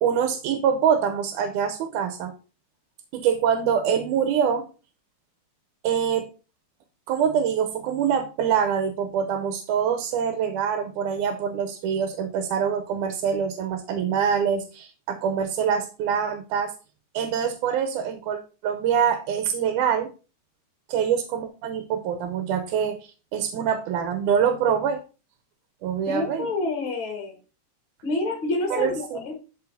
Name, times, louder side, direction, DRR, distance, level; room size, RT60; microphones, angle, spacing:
voice 1, 0.0-2.3 3.1-4.7 5.8-6.3 7.1-16.7 17.1-20.1 20.9-25.0 25.8-26.5 28.7-29.2, right 7 dB, 90° right, 5 dB, 2.2 m, -25 dB
voice 2, 26.0-27.4 28.0-29.4, left 2 dB, 50° left, 2 dB, 1.9 m, -28 dB
12.5 x 4.5 x 2.7 m, 0.33 s
omnidirectional pair, 3.5 m